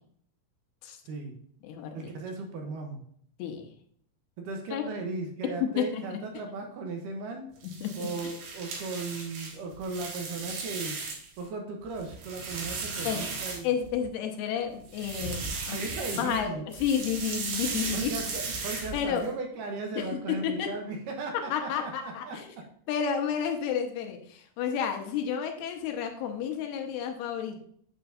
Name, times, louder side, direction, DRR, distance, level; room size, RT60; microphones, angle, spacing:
voice 1, 1.1-1.4 1.9-3.0 4.4-7.5 8.0-11.0 11.4-13.7 15.6-16.7 17.9-22.4, right 3 dB, 70° right, 2 dB, 2.1 m, -37 dB
voice 2, 1.6-2.1 3.4-3.7 4.7-4.8 5.6-6.2 7.8-8.1 13.1-13.3 13.6-15.8 16.2-18.1 18.9-19.2 20.0-20.7 21.5-22.5 22.9-27.7, left 8 dB, 85° left, 4 dB, 2.8 m, -31 dB
sound 1, 7.6-11.4 11.8-14.1 14.8-16.4 16.7-19.3, right 4 dB, 85° right, 3.6 m, -36 dB
7.9 x 6.8 x 2.6 m, 0.63 s
omnidirectional pair, 4.6 m